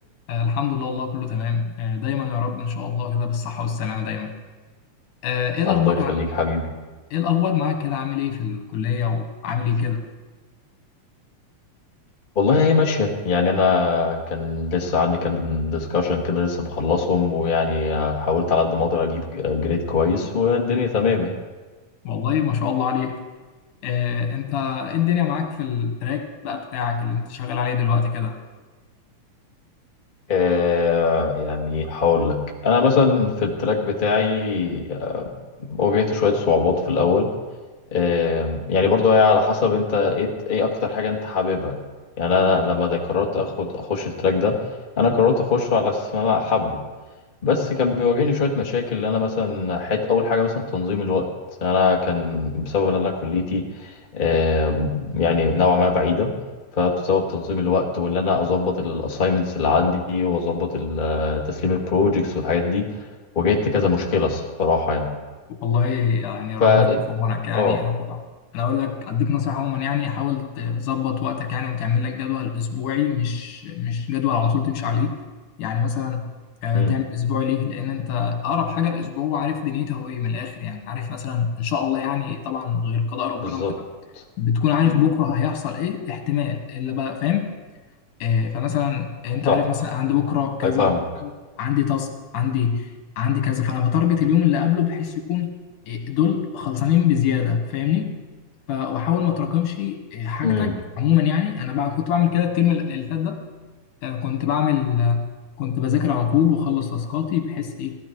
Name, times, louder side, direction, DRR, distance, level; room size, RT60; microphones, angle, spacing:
voice 1, 0.3-4.3 5.2-6.2 7.1-10.0 22.0-23.3 23.8-28.4 65.6-68.2 68.5-75.2 75.6-76.3 76.6-83.7 84.4-87.5 88.2-90.9 91.2-91.3 91.6-92.9 93.2-95.5 95.9-98.1 98.7-103.4 104.0-105.3 105.6-108.0, left 8 dB, 80° left, 4 dB, 2.9 m, -24 dB
voice 2, 5.6-6.6 12.3-21.4 30.3-32.4 32.6-35.3 35.7-37.3 37.9-41.8 42.2-44.5 45.0-46.8 47.4-51.2 51.6-56.3 56.7-62.8 63.3-65.1 66.6-67.0 67.5-67.8 76.7-77.0 83.4-83.7 84.1-84.2 84.8-84.9 89.4-89.6 90.6-91.0 100.4-100.7, left 4 dB, 35° left, 1 dB, 0.8 m, -21 dB
17.0 x 13.0 x 4.6 m, 1.3 s
omnidirectional pair, 3.6 m